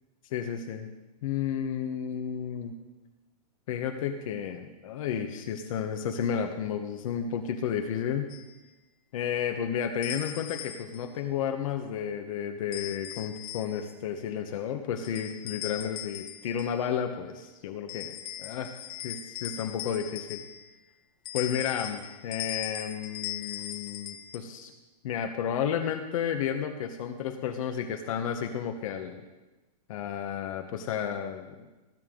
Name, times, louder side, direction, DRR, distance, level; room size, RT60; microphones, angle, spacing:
voice 1, 0.3-0.9 1.2-2.7 3.7-8.3 9.1-18.1 18.4-18.7 19.0-20.4 21.3-24.7 25.0-29.2 29.9-31.6, left 8 dB, 55° left, 5 dB, 1.1 m, -32 dB
sound 1, 8.3-8.5 10.0-11.1 12.7-14.0 15.0-16.8 17.9-20.8 21.3-24.4, left 12 dB, 25° left, 0.7 m, -40 dB
19.5 x 8.9 x 3.8 m, 1.1 s
hypercardioid pair, 155°, 21 cm